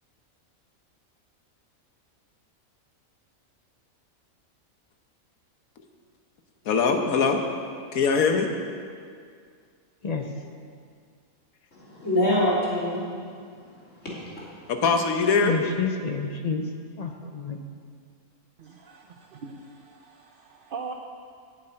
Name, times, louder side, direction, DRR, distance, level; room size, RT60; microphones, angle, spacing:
voice 1, 6.6-7.4 7.9-8.5 14.7-15.7, left 5 dB, 85° left, 1.4 m, -22 dB
voice 2, 11.7-14.7, left 1 dB, 60° left, 3.3 m, -27 dB
voice 3, 15.4-16.7 17.0-17.6, left 5 dB, 40° left, 0.6 m, -29 dB
voice 4, 18.6-20.9, right 4 dB, 50° right, 0.8 m, -41 dB
8.3 x 7.6 x 8.9 m
omnidirectional pair, 1.4 m